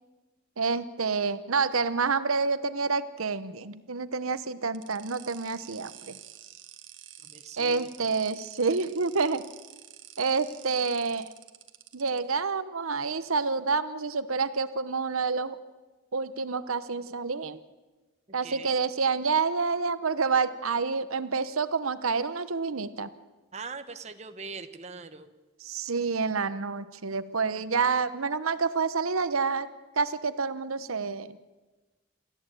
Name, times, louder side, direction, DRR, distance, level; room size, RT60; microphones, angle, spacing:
voice 1, 0.6-6.2 7.6-9.4 10.2-11.3 11.9-15.6 16.1-17.6 18.3-23.1 25.6-29.7 30.0-31.4, right 4 dB, 85° right, 13 dB, 1.0 m, -28 dB
sound 1, 4.7-12.2, right 12 dB, 60° right, 1.7 m, -49 dB
voice 2, 7.2-8.2 18.3-18.7 23.5-25.3, right 4 dB, 30° right, 8 dB, 1.1 m, -42 dB
28.0 x 14.0 x 9.0 m, 1.2 s
head